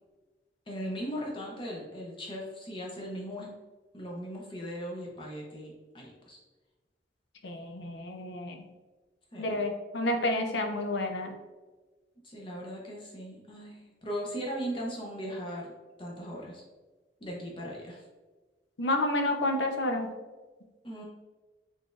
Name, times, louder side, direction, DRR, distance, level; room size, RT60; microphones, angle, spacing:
voice 1, 0.7-3.5 3.9-6.4 9.3-9.7 12.2-15.7 16.0-16.6 17.2-18.0 20.8-21.0, equal, 30° left, -2 dB, 0.6 m, -38 dB
voice 2, 7.4-8.6 9.4-11.3 18.8-20.1, left 1 dB, 80° left, 5 dB, 0.5 m, -30 dB
4.1 x 3.2 x 2.4 m, 1.3 s
head